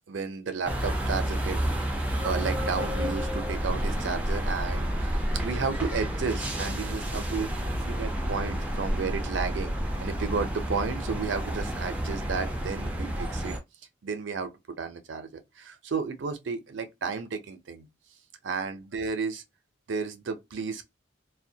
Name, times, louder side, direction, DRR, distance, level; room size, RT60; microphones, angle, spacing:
voice 1, 0.1-1.9 2.2-5.1 5.4-7.5 7.8-9.7 10.0-13.6 14.0-14.5 14.8-17.9 18.4-19.4 19.9-20.9, right 5 dB, 70° right, 0.5 m, -33 dB
sound 1, 0.6-13.6, equal, 5° right, 0.4 m, -30 dB
2.2 x 2.1 x 2.7 m
head